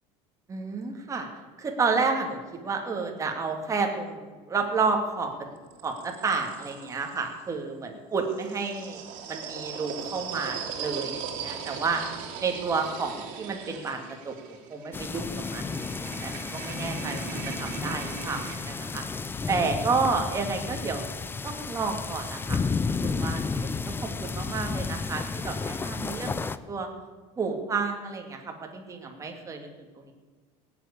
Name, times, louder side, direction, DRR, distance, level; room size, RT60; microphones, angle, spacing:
voice 1, 0.5-1.3 1.6-5.3 5.8-9.0 9.3-12.0 12.4-21.0 21.4-26.9 27.4-29.7 29.9-30.1, right 4 dB, 20° right, 2 dB, 2.4 m, -31 dB
sound 1, 4.9-7.4 8.2-18.6, right 7 dB, 65° right, 2.8 m, -39 dB
sound 2, 14.9-26.6, left 4 dB, 15° left, 0.5 m, -32 dB
18.0 x 8.1 x 8.5 m, 1.4 s
cardioid pair, 135°, 15 cm